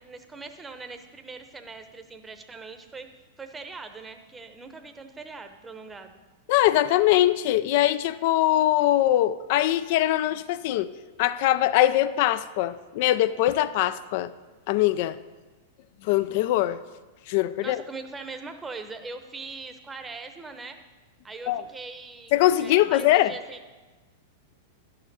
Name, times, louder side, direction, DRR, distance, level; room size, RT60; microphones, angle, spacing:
voice 1, 0.0-3.1 3.4-6.2 17.6-20.8 21.2-22.3 22.6-23.6, right 3 dB, 15° right, 7 dB, 0.8 m, -41 dB
voice 2, 6.5-10.9 11.2-14.3 14.7-15.2 16.0-16.8 17.3-17.8 21.5-21.6 22.3-23.3, left 14 dB, 55° left, 15 dB, 0.4 m, -22 dB
11.0 x 6.7 x 4.1 m, 1.2 s
hypercardioid pair, 110°, 0 cm